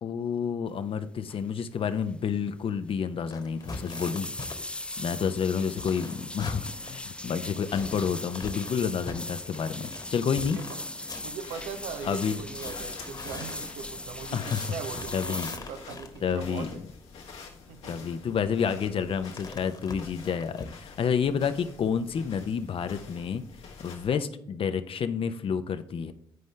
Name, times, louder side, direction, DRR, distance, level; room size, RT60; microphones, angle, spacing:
voice 1, 0.0-4.3 4.6-10.6 12.0-12.4 14.3-14.7 15.1-15.5 16.2-16.7 17.9-23.4 23.8-26.1, left 7 dB, 55° left, 10 dB, 0.8 m, -29 dB
sound 1, 1.3-1.5 1.8-2.1 2.4-2.5 3.4-15.6, left 1 dB, 10° left, 0.5 m, -39 dB
sound 2, 3.3-16.7 18.3-20.7, left 3 dB, 35° left, 1.5 m, -44 dB
voice 2, 10.4-10.8 11.2-16.8 17.7-18.3, right 7 dB, 80° right, 8 dB, 0.7 m, -41 dB
sound 3, 11.4-24.1, left 4 dB, 75° left, 1.6 m, -47 dB
9.4 x 5.2 x 3.3 m, 0.70 s
hypercardioid pair, 45°, 11 cm